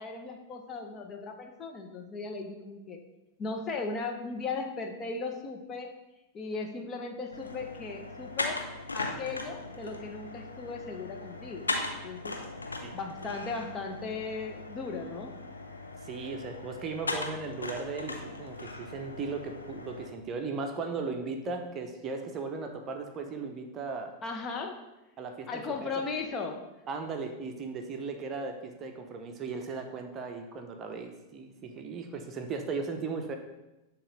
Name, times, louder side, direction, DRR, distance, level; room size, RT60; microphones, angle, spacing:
voice 1, 0.0-3.0 3.4-5.9 6.3-8.6 8.9-11.7 12.0-12.4 12.9-15.3 24.2-24.8 25.5-26.6, left 4 dB, 25° left, 3 dB, 0.7 m, -37 dB
sound 1, 7.3-20.1, left 2 dB, 80° left, 0.7 m, -39 dB
voice 2, 16.0-24.1 25.2-25.9 26.9-33.4, right 4 dB, 30° right, 4 dB, 0.7 m, -37 dB
7.0 x 3.0 x 5.0 m, 0.97 s
figure-of-eight pair, 90°, 0 cm